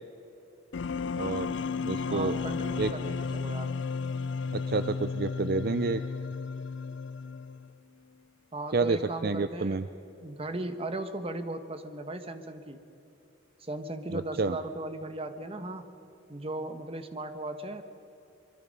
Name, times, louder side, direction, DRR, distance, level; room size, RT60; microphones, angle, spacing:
sound 1, 0.7-7.8, left 5 dB, 60° left, 0.4 m, -33 dB
voice 1, 1.2-1.5 1.8-2.4 2.8-2.9 4.5-6.0 8.7-9.9 14.1-14.6, right 3 dB, 50° right, 11 dB, 0.5 m, -29 dB
voice 2, 2.1-3.8 8.5-9.8 10.2-12.8 13.6-15.9 16.3-17.8, right 1 dB, 30° right, 8 dB, 1.2 m, -37 dB
25.0 x 23.0 x 5.4 m, 2.9 s
head